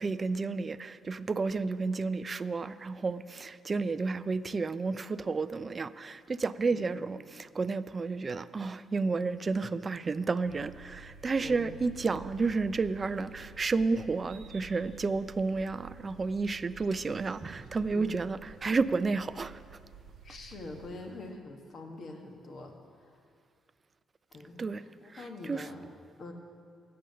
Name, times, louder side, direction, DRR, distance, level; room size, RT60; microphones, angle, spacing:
voice 1, 0.0-19.6 24.6-24.8 25.1-25.7, right 4 dB, 35° right, 14 dB, 0.3 m, -31 dB
voice 2, 6.7-7.1 11.4-11.7 17.9-18.2 20.2-23.2 24.3-25.9 26.2-26.3, left 2 dB, 55° left, 3 dB, 1.3 m, -45 dB
sound 1, 10.4-20.9, right 5 dB, 80° right, 1.1 m, -51 dB
9.0 x 7.7 x 6.6 m, 2.2 s
cardioid pair, 90°, 0 cm